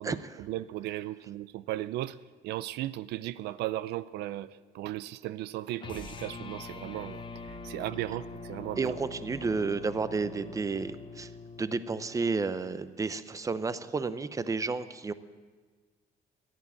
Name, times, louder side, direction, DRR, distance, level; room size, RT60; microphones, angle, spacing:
voice 1, 0.0-2.2 2.4-8.9, right 15 dB, 80° right, 16 dB, 0.5 m, -36 dB
sound 1, 5.8-12.2, left 3 dB, 30° left, 1.1 m, -44 dB
voice 2, 8.8-11.3 11.6-15.1, right 4 dB, 20° right, 14 dB, 0.7 m, -31 dB
14.0 x 11.0 x 8.7 m, 1.5 s
cardioid pair, 110°, 17 cm